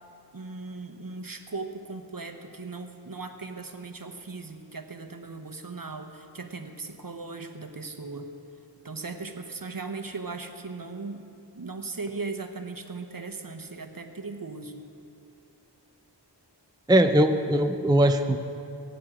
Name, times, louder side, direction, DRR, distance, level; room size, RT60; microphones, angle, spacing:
voice 1, 0.3-8.3 8.8-11.2 11.5-14.8, right 3 dB, 55° right, 6 dB, 1.1 m, -38 dB
voice 2, 16.9-18.4, right 1 dB, 10° right, 7 dB, 0.6 m, -20 dB
22.5 x 9.4 x 5.0 m, 2.7 s
wide cardioid pair, 50°, 42 cm